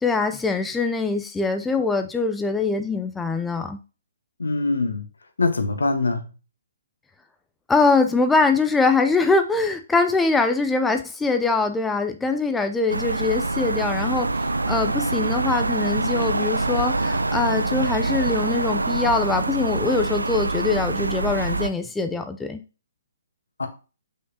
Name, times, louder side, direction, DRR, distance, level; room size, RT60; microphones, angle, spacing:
voice 1, 0.0-3.8 7.7-14.3 14.7-22.6, left 3 dB, 5° left, 0.5 m, -23 dB
voice 2, 4.4-5.1 5.4-6.3 23.6-23.7, left 3 dB, 75° left, 1.4 m, -23 dB
sound 1, 12.9-21.7, right 2 dB, 80° right, 0.5 m, -25 dB
6.4 x 5.5 x 2.8 m
figure-of-eight pair, 130°, 0 cm